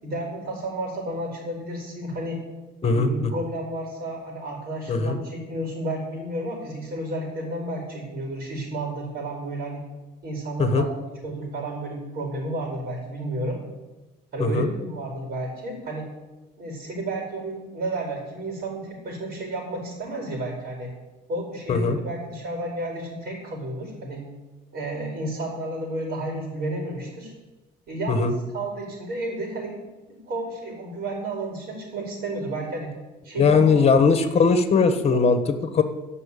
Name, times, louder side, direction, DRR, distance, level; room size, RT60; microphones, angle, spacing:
voice 1, 0.0-2.4 2.8-9.8 10.2-11.0 11.2-13.6 14.3-16.1 16.6-20.9 21.3-24.2 24.7-27.3 27.9-29.7 30.3-32.9 33.2-34.1 34.9-35.2, right 1 dB, 60° right, -1 dB, 4.5 m, -32 dB
voice 2, 2.8-3.3 4.9-5.2 10.6-10.8 14.4-14.7 21.7-22.0 28.1-28.3 33.4-35.8, left 4 dB, 40° left, 9 dB, 1.4 m, -20 dB
12.0 x 5.8 x 8.4 m, 1.1 s
cardioid pair, 110°, 17 cm